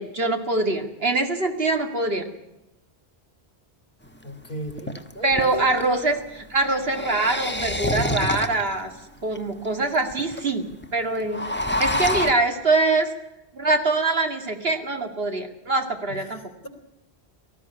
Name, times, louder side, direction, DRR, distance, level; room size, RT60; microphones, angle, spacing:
voice 1, 0.0-2.2 5.2-8.9 9.2-10.7 10.9-13.1 13.5-16.4, right 2 dB, 70° right, 5 dB, 2.5 m, -24 dB
sound 1, 4.1-4.2 4.7-5.9 6.7-8.8 9.3-9.4 9.6-9.7 9.9-10.4 10.7-10.8 11.1-12.3, left 1 dB, 10° left, 1.2 m, -27 dB
voice 2, 4.2-5.8 16.1-16.7, right 1 dB, 55° left, 8 dB, 3.2 m, -35 dB
19.0 x 14.5 x 9.8 m, 0.93 s
omnidirectional pair, 1.0 m